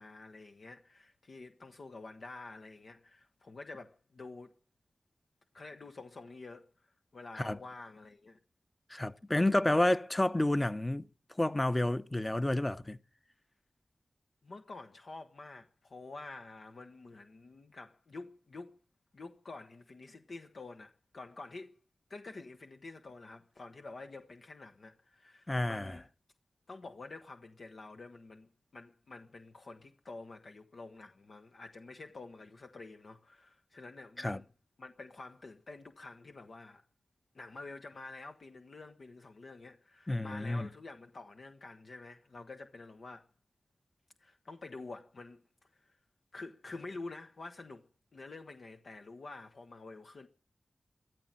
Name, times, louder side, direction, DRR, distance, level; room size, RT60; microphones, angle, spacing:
voice 1, 0.0-4.5 5.5-8.4 9.5-9.8 14.4-18.8 19.1-21.7 22.1-26.1 26.7-34.5 34.8-36.8 37.3-43.3 44.2-45.4 45.7-46.0 46.3-50.3, left 3 dB, 70° left, 1.1 m, -48 dB
voice 2, 8.9-11.1 11.4-13.0 25.5-26.0 34.2-34.4 40.1-40.7, left 1 dB, 20° left, 0.9 m, -30 dB
13.5 x 13.5 x 7.5 m
cardioid pair, 60°, 0 cm